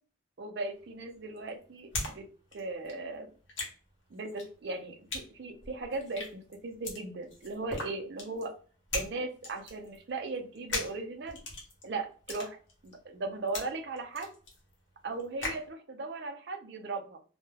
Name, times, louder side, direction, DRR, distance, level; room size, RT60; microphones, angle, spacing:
voice 1, 0.4-2.2 2.5-3.3 4.1-8.6 8.9-11.4 11.8-12.6 12.8-14.3 15.0-17.2, right 3 dB, 55° right, 5 dB, 0.5 m, -37 dB
sound 1, 0.7-2.2 2.4-15.7, left 2 dB, 75° left, 0.9 m, -40 dB
2.2 x 2.1 x 3.1 m, 0.40 s
head